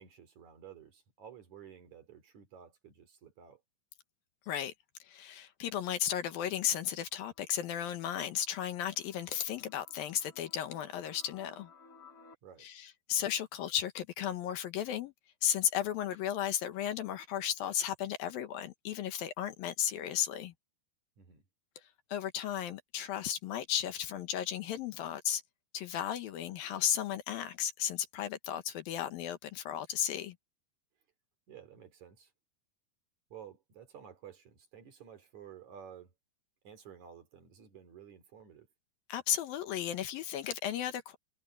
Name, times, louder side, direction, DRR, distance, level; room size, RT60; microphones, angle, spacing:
voice 1, 0.0-3.6 12.4-12.7 21.2-21.4 31.5-32.3 33.3-36.1 36.6-38.7, right 8 dB, 50° right, 3.7 m, -52 dB
voice 2, 5.0-11.7 12.6-15.1 15.4-20.5 21.8-25.4 25.7-30.4 39.1-41.2, left 10 dB, 70° left, 2.8 m, -34 dB
sound 1, 6.8-12.4, left 4 dB, 35° left, 4.7 m, -61 dB
omnidirectional pair, 4.5 m